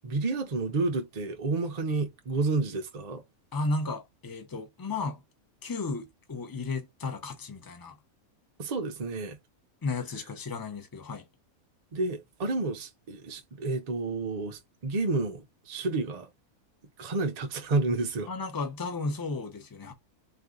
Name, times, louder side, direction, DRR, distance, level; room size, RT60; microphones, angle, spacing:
voice 1, 0.0-3.2 8.6-9.4 11.9-16.3 17.0-18.3, right 3 dB, 55° right, 0.4 m, -30 dB
voice 2, 3.5-5.2 5.6-7.9 9.8-11.2 18.3-19.9, left 3 dB, 20° left, 0.6 m, -34 dB
3.9 x 2.7 x 3.7 m
omnidirectional pair, 1.5 m